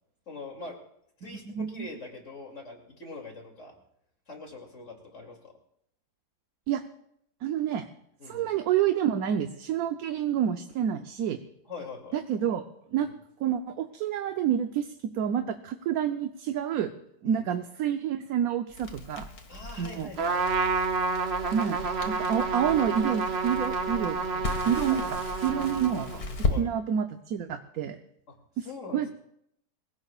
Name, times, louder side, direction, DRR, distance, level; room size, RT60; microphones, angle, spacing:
voice 1, 0.3-0.8 1.2-3.7 4.3-5.5 8.2-8.5 11.7-12.2 13.0-13.1 17.2-17.5 19.5-20.4 24.8-25.0 26.4-26.7 28.3-29.1, left 3 dB, 45° left, 2 dB, 3.1 m, -43 dB
voice 2, 1.2-1.9 6.7-6.8 7.4-7.8 8.3-11.4 12.1-12.6 12.9-13.1 13.4-16.9 17.2-19.3 19.8-20.1 21.5-21.8 22.0-25.2 25.4-26.1 26.6-28.0 28.6-28.7 28.9-29.1, right 9 dB, 65° right, 7 dB, 1.2 m, -28 dB
Crackle, 18.7-26.6, left 4 dB, 60° left, 2.2 m, -36 dB
Trumpet, 20.2-26.3, right 4 dB, 45° right, 1.0 m, -29 dB
26.0 x 17.0 x 2.4 m, 0.75 s
omnidirectional pair, 1.8 m